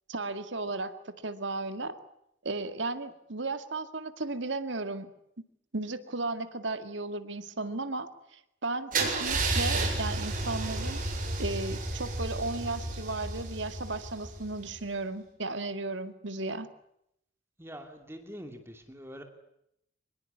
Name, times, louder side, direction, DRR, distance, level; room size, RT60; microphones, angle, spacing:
voice 1, 0.1-2.0 2.4-5.1 5.7-11.0 11.4-16.7, right 2 dB, 75° right, 9 dB, 2.0 m, -35 dB
Car / Engine starting / Idling, 8.9-14.8, right 2 dB, 45° right, 7.4 m, -32 dB
voice 2, 17.6-19.2, equal, 15° right, 5 dB, 2.8 m, -44 dB
25.0 x 21.5 x 9.6 m, 0.78 s
head